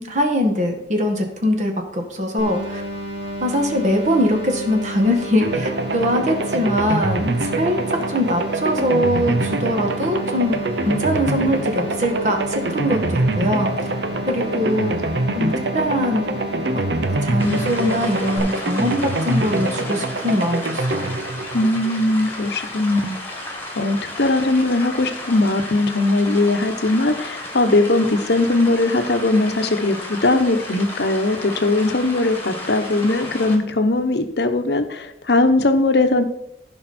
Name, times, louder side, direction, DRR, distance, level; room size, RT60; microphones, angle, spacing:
voice 1, 0.0-2.8 3.4-7.8 8.1-10.6 10.8-13.9 14.3-15.0 15.3-16.4 17.0-21.1, equal, 40° right, 3 dB, 1.7 m, -22 dB
sound 1, 2.4-18.4, right 1 dB, 90° right, 2.3 m, -31 dB
sound 2, 5.4-22.3, right 2 dB, 70° right, 0.8 m, -25 dB
sound 3, 17.4-33.6, left 1 dB, 15° left, 1.7 m, -33 dB
voice 2, 21.5-23.2 23.8-36.2, left 2 dB, 65° left, 8 dB, 1.0 m, -19 dB
15.0 x 5.3 x 4.3 m, 0.79 s
head